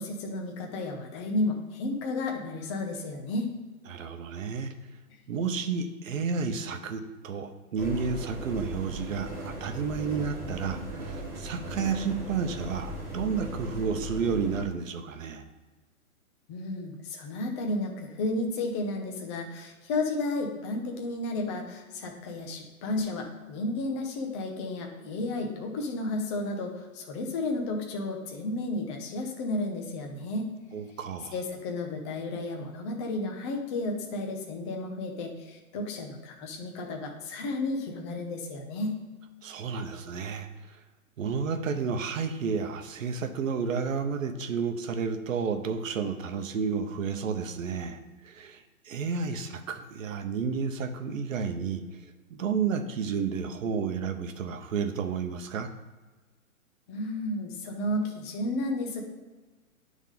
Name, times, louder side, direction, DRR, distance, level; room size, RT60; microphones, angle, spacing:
voice 1, 0.0-3.5 16.5-30.5 31.3-39.0 56.9-59.0, left 2 dB, 20° left, 2 dB, 0.6 m, -32 dB
voice 2, 3.9-4.7 5.3-15.4 30.7-31.3 39.4-40.8 41.2-51.8 52.3-55.7, right 5 dB, 65° right, 7 dB, 0.9 m, -31 dB
sound 1, 7.8-14.7, equal, 5° right, 0.9 m, -38 dB
10.0 x 3.7 x 3.6 m, 1.3 s
hypercardioid pair, 140°, 43 cm